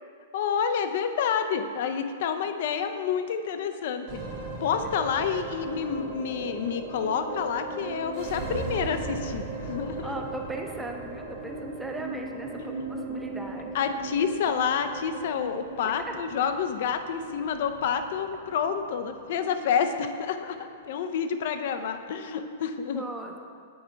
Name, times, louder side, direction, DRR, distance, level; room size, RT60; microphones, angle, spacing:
voice 1, 0.3-4.2 4.6-10.2 13.7-23.0, left 7 dB, 60° left, 8 dB, 0.5 m, -29 dB
sound 1, 4.1-22.6, right 3 dB, 45° right, 1.5 m, -38 dB
voice 2, 10.0-13.7 16.1-16.2 22.9-23.4, right 2 dB, 5° right, 2 dB, 0.6 m, -38 dB
7.8 x 4.4 x 3.8 m, 2.2 s
hypercardioid pair, 130°, 0 cm